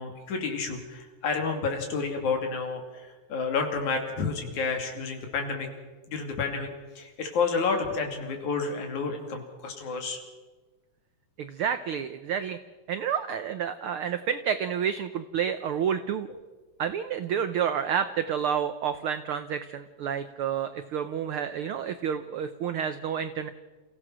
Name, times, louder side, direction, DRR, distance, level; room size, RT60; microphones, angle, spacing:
voice 1, 0.0-5.7 6.1-6.7 7.0-10.2, left 4 dB, 75° left, 4 dB, 4.1 m, -30 dB
voice 2, 11.4-12.6 12.9-16.3 16.8-23.5, right 8 dB, 90° right, 10 dB, 1.1 m, -29 dB
28.5 x 16.0 x 6.2 m, 1.3 s
omnidirectional pair, 3.4 m